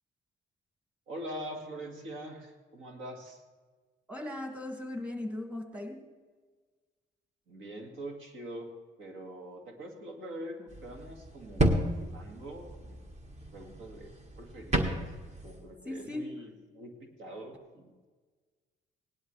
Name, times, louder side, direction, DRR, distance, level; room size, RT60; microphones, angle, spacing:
voice 1, 1.1-3.4 7.5-8.7 9.0-13.1 13.5-15.0 15.4-18.1, right 1 dB, 80° right, 3 dB, 2.1 m, -44 dB
voice 2, 4.1-6.0 15.9-16.3, left 1 dB, 5° right, 3 dB, 2.0 m, -38 dB
sound 1, 10.7-15.6, right 1 dB, 35° right, 1.6 m, -32 dB
18.0 x 11.0 x 3.3 m, 1.4 s
cardioid pair, 90°, 20 cm